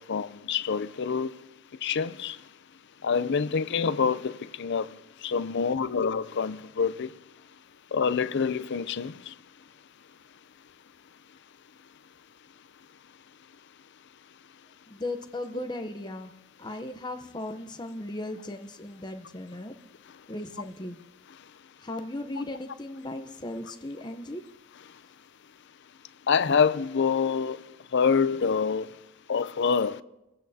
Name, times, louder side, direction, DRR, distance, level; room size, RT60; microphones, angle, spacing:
voice 1, 0.0-1.3 1.8-2.4 3.0-4.9 5.2-7.1 7.9-9.3 22.4-22.5 26.3-27.6 27.9-28.9 29.3-30.0, left 6 dB, 50° left, 0.5 m, -26 dB
voice 2, 14.9-16.3 16.6-19.8 20.3-21.0 21.8-24.4, left 1 dB, 20° left, 0.8 m, -37 dB
30.0 x 15.0 x 2.8 m
head